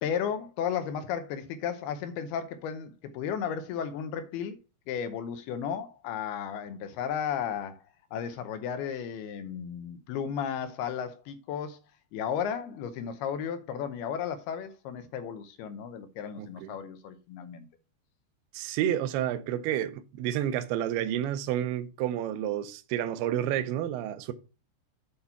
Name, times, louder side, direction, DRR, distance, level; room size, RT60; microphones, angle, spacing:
voice 1, 0.0-4.6 4.9-7.8 8.1-11.8 12.1-17.7, left 8 dB, 75° left, 2.5 m, -34 dB
voice 2, 16.4-16.8 18.5-24.3, right 11 dB, 80° right, 2.5 m, -30 dB
8.7 x 4.2 x 5.7 m
omnidirectional pair, 5.1 m